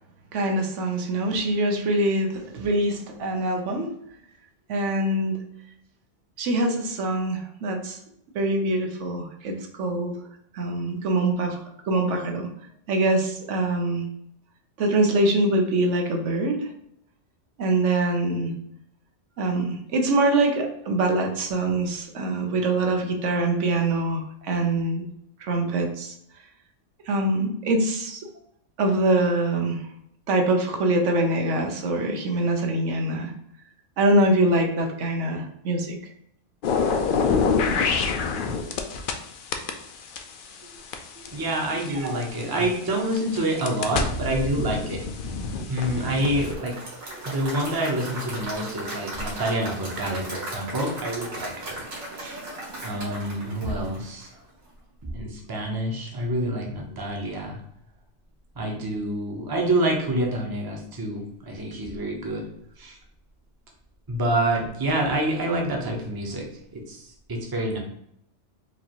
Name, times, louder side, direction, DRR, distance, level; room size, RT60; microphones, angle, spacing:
voice 1, 0.3-3.9 4.7-5.4 6.4-8.0 8.3-10.2 10.5-12.5 12.9-14.1 14.8-16.7 17.6-18.5 19.4-25.0 25.4-26.1 27.1-28.2 28.8-29.8 30.3-33.3 34.0-36.1 41.2-41.3 41.9-42.2, right 2 dB, 80° right, 3 dB, 1.0 m, -24 dB
sound 1, 36.6-39.2 39.5-42.4 43.1-46.5, left 5 dB, 60° left, 0.6 m, -26 dB
voice 2, 41.3-45.0 45.7-46.8 47.2-51.8 52.1-52.4 52.8-54.3 55.0-57.6 58.6-62.5 62.8-63.0 64.1-67.8, right 1 dB, 25° right, 0 dB, 0.6 m, -27 dB
Applause / Crowd, 46.2-54.4, right 1 dB, 60° right, 1.5 m, -37 dB
4.8 x 2.6 x 2.9 m, 0.74 s
omnidirectional pair, 1.2 m